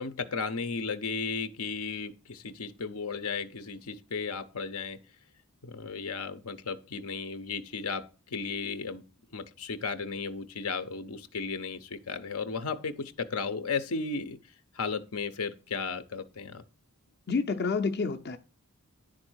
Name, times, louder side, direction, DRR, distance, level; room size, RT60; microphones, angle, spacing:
voice 1, 0.0-5.0 5.6-9.0 9.3-14.4 14.7-16.6, left 5 dB, 80° left, 0.8 m, -35 dB
voice 2, 17.3-18.4, left 4 dB, 50° left, 0.6 m, -28 dB
10.5 x 3.8 x 6.2 m
head